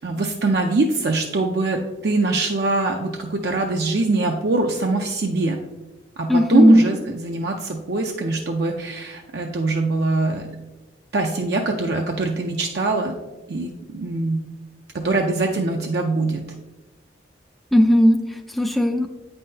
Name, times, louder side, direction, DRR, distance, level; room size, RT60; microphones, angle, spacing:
voice 1, 0.0-5.6 6.2-10.5 11.1-13.1 13.5-14.5 14.9-16.4, right 2 dB, 55° right, 2 dB, 0.5 m, -23 dB
voice 2, 6.3-6.8 17.7-19.1, equal, ahead, 5 dB, 0.3 m, -16 dB
8.5 x 5.6 x 2.7 m, 1.1 s
head